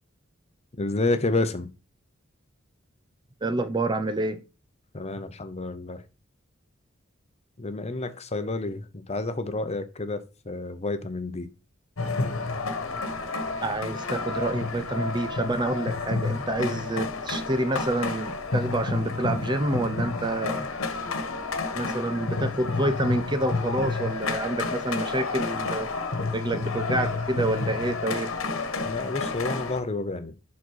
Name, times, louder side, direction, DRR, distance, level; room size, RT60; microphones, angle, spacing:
voice 1, 0.8-1.7 4.9-6.0 7.6-11.5 28.8-30.3, left 2 dB, 30° left, 0.9 m, -29 dB
voice 2, 3.4-4.4 13.6-20.7 21.7-25.9 26.3-28.3, right 2 dB, 20° right, 0.6 m, -28 dB
sound 1, 12.0-29.8, left 3 dB, 80° left, 1.3 m, -30 dB
11.0 x 4.1 x 4.7 m
head